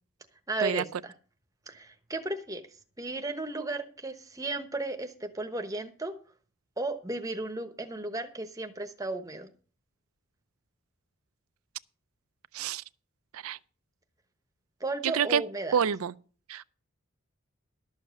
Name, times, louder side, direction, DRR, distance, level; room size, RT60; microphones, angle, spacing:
voice 1, 0.5-1.1 1.7-2.6 3.0-6.1 6.8-9.5 14.8-15.8, right 2 dB, 15° right, 1.0 m, -34 dB
voice 2, 15.0-15.4 15.7-16.1 16.5-16.6, right 7 dB, 80° right, 0.5 m, -27 dB
12.5 x 7.2 x 6.2 m
head